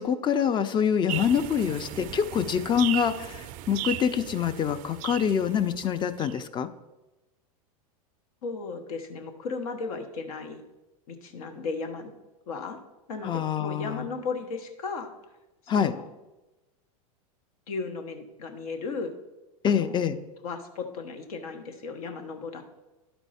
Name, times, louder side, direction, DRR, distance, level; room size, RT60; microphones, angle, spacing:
voice 1, 0.0-6.7 13.2-14.1 15.7-15.9 19.6-20.2, left 8 dB, 25° left, 11 dB, 0.5 m, -25 dB
sound 1, 1.1-6.4, right 13 dB, 45° right, 0.4 m, -37 dB
voice 2, 8.4-10.6 11.1-12.1 12.5-12.8 13.1-15.1 15.7-16.1 17.7-19.1 19.7-20.0 20.4-22.6, left 4 dB, 70° left, 6 dB, 1.1 m, -35 dB
11.5 x 4.5 x 4.1 m, 1.1 s
hypercardioid pair, 110°, 19 cm